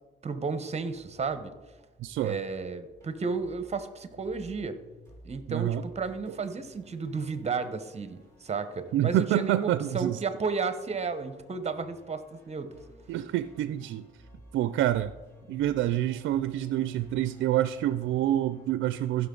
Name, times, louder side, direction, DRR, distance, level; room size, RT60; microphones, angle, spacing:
voice 1, 0.2-1.5 2.2-4.8 5.2-12.7, right 4 dB, 35° right, 11 dB, 1.0 m, -33 dB
sound 1, 0.8-18.7, equal, 15° left, 3.9 m, -56 dB
voice 2, 2.0-2.4 5.5-5.8 8.9-10.2 13.1-14.1 14.5-15.1 15.5-19.3, right 13 dB, 75° right, 13 dB, 0.4 m, -27 dB
15.5 x 6.2 x 3.9 m, 1.2 s
cardioid pair, 90°, 20 cm